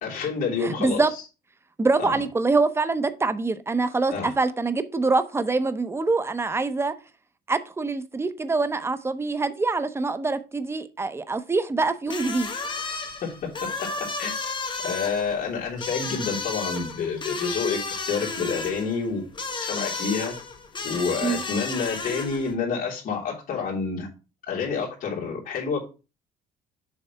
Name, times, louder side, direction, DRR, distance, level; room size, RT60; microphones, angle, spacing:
voice 1, 0.0-1.0 2.0-2.2 4.1-4.3 13.2-14.3 14.8-20.3 20.8-24.1 24.5-25.8, left 5 dB, 55° left, -3 dB, 2.9 m, -28 dB
voice 2, 0.6-1.1 1.8-6.9 7.5-12.5 21.2-21.4, right 3 dB, 15° right, 12 dB, 0.7 m, -25 dB
sound 1, 12.1-22.5, left 4 dB, 30° left, 1.3 m, -33 dB
7.2 x 3.4 x 5.6 m, 0.32 s
cardioid pair, 110°, 17 cm